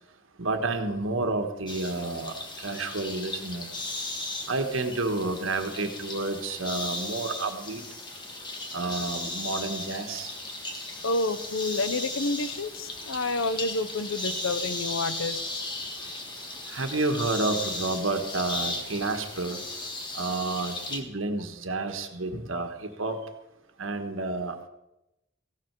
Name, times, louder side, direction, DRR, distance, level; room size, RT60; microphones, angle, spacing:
voice 1, 0.4-3.7 4.5-7.8 8.7-10.3 16.7-19.6 20.1-23.2 23.8-24.5, right 2 dB, 85° right, 6 dB, 1.5 m, -30 dB
sound 1, 1.7-21.0, left 2 dB, 25° left, 1.7 m, -36 dB
voice 2, 11.0-15.4, left 2 dB, 85° left, 12 dB, 1.0 m, -29 dB
15.5 x 12.5 x 4.7 m, 0.90 s
head